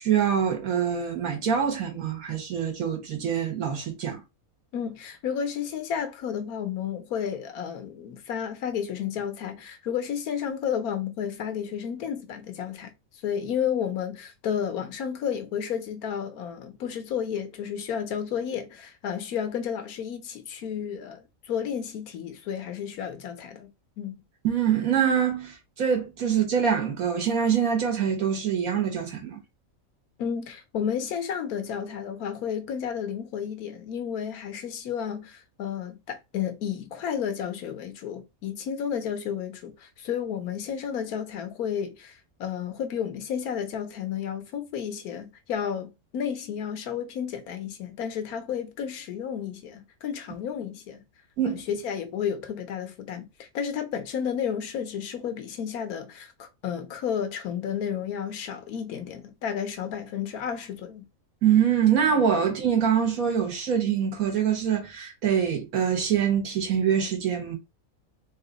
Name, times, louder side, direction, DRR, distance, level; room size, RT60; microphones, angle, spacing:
voice 1, 0.0-4.2 24.4-29.4 51.4-51.6 61.4-67.5, right 8 dB, 75° right, 1.7 m, -24 dB
voice 2, 4.7-12.9 13.2-23.7 24.0-24.2 30.2-51.0 51.4-61.1, left 8 dB, 90° left, 1.3 m, -32 dB
3.8 x 2.5 x 3.9 m
omnidirectional pair, 1.5 m